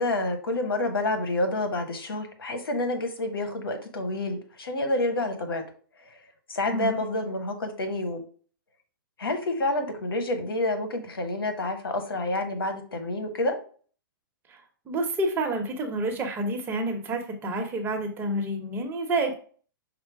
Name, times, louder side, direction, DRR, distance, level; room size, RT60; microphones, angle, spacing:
voice 1, 0.0-5.6 6.0-6.2 6.5-8.2 9.2-13.5, left 2 dB, 85° left, 7 dB, 1.1 m, -28 dB
voice 2, 6.7-7.0 14.9-19.3, right 2 dB, 20° right, 2 dB, 0.9 m, -28 dB
5.5 x 2.1 x 4.6 m, 0.43 s
hypercardioid pair, 135°, 12 cm